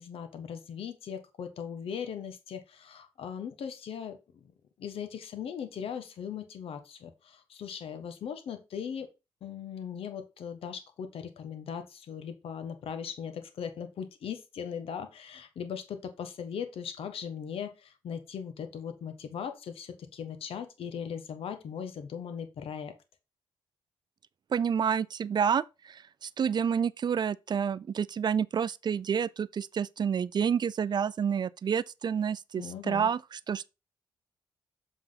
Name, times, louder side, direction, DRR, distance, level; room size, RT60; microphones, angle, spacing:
voice 1, 0.0-4.5 4.8-9.1 9.4-22.9 32.6-33.1, left 7 dB, 75° left, 1.3 m, -39 dB
voice 2, 24.5-33.7, right 7 dB, 50° right, 0.4 m, -29 dB
7.3 x 4.0 x 4.0 m
supercardioid pair, 60°, 10 cm